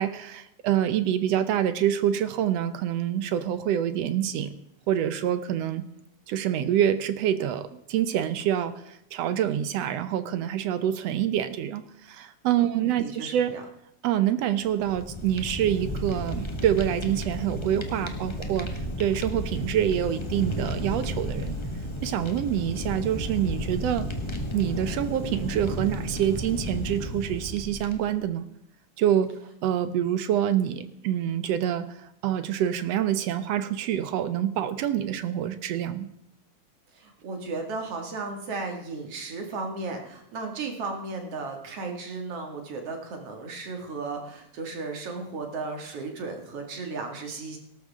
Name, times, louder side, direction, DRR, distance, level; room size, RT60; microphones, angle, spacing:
voice 1, 0.0-4.5 4.9-5.8 6.3-13.5 14.0-18.7 19.0-21.5 22.0-24.1 24.5-28.5 29.0-29.3 29.6-31.9 32.2-36.1, right 10 dB, 70° right, 12 dB, 1.7 m, -26 dB
voice 2, 12.6-13.6 36.9-47.6, right 3 dB, 55° right, 3 dB, 2.9 m, -35 dB
Fire, 14.7-28.3, equal, 35° left, 0.4 m, -33 dB
18.5 x 13.0 x 3.6 m, 0.79 s
omnidirectional pair, 3.3 m